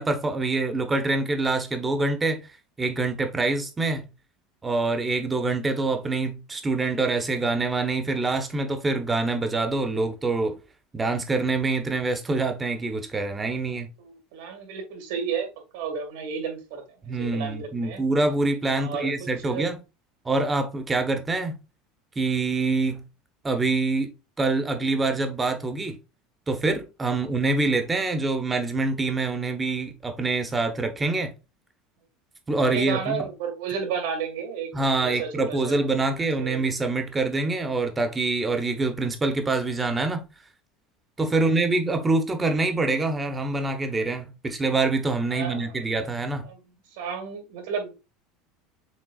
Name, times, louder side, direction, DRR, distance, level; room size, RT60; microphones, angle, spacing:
voice 1, 0.0-2.4 2.8-4.1 4.6-10.6 10.9-13.9 17.0-19.8 20.2-21.6 22.2-23.0 23.4-24.1 24.4-26.0 26.5-31.3 32.5-33.3 34.7-40.2 41.2-46.4, right 3 dB, 15° right, 0.8 m, -25 dB
voice 2, 14.0-15.5 15.7-16.8 17.2-18.0 18.8-19.1 19.4-19.7 32.7-34.7 35.0-35.8 36.2-36.6 45.3-45.8 46.5-46.6 46.9-47.9, right 6 dB, 80° right, 1.7 m, -32 dB
6.2 x 3.6 x 2.4 m
supercardioid pair, 145°, 0 cm